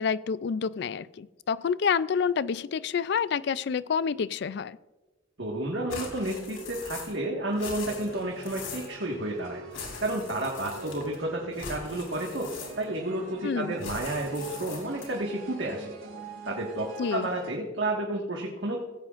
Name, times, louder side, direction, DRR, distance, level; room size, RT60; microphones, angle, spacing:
voice 1, 0.0-4.8 13.4-13.7 17.0-17.3, left 6 dB, 55° left, 18 dB, 0.3 m, -28 dB
voice 2, 5.4-9.6 10.0-12.5 12.8-15.9 16.4-18.8, right 1 dB, 65° right, -1 dB, 1.6 m, -31 dB
sound 1, 5.9-7.2 7.5-9.0 9.7-11.2 11.5-13.0 13.8-15.2, left 4 dB, 80° left, 3.9 m, -41 dB
sound 2, 7.8-17.5, right 2 dB, 85° right, 2.4 m, -45 dB
16.5 x 16.0 x 2.5 m, 1.2 s
head